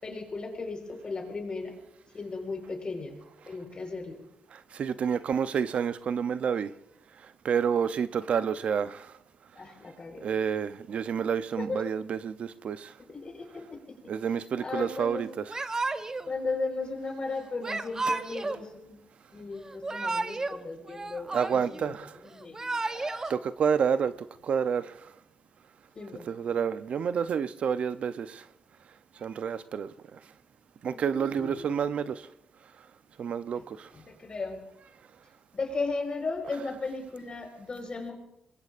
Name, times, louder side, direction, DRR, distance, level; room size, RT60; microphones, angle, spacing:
voice 1, 0.0-1.8 2.1-3.2 3.4-4.2 9.5-10.2 11.6-11.8 13.0-14.0 14.6-15.2 16.2-19.0 19.3-22.0 22.3-23.3 25.9-26.2 30.9-31.7 33.5-33.6 33.9-34.6 35.5-38.1, left 3 dB, 40° left, 3 dB, 4.5 m, -36 dB
voice 2, 4.5-6.7 7.4-9.1 10.2-12.9 14.1-15.4 21.3-22.1 23.3-24.1 24.4-25.0 26.3-28.4 29.2-29.9 30.8-32.2 33.2-33.9, right 7 dB, 65° right, 12 dB, 0.6 m, -29 dB
Yell / Crying sobbing, 15.5-16.3 17.6-18.6 19.7-20.6 20.9-21.8 22.4-23.3, right 3 dB, 25° right, 0.9 m, -32 dB
26.0 x 21.5 x 2.5 m, 0.85 s
cardioid pair, 75°, 2 cm